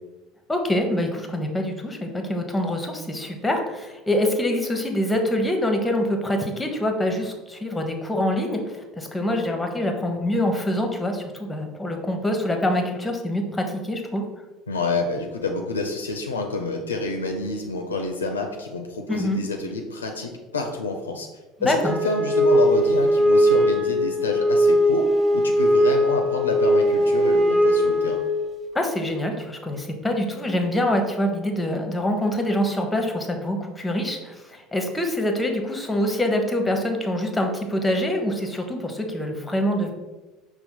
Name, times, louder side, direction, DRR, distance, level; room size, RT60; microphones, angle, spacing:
voice 1, 0.5-14.3 19.1-19.4 21.6-21.9 28.7-39.9, left 1 dB, 10° left, 4 dB, 0.8 m, -25 dB
voice 2, 14.7-21.3 21.6-28.2, left 3 dB, 85° left, 3 dB, 0.4 m, -28 dB
Wind instrument woodwind instrument, 21.8-28.6, equal, 25° right, 0.6 m, -20 dB
5.4 x 2.0 x 4.4 m, 1.2 s
figure-of-eight pair, 70°, 0 cm